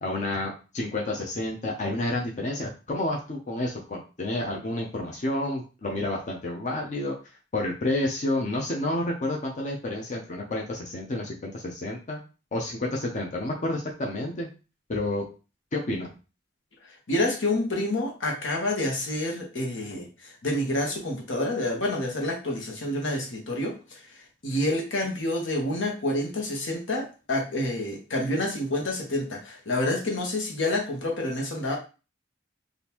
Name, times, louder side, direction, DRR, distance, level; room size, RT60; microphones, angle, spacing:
voice 1, 0.0-7.1 7.5-12.2 12.5-14.5 14.9-15.3 15.7-16.1, left 1 dB, 40° left, -1 dB, 0.6 m, -30 dB
voice 2, 16.8-31.8, left 1 dB, 85° left, 0 dB, 1.1 m, -28 dB
3.6 x 2.6 x 2.9 m, 0.32 s
head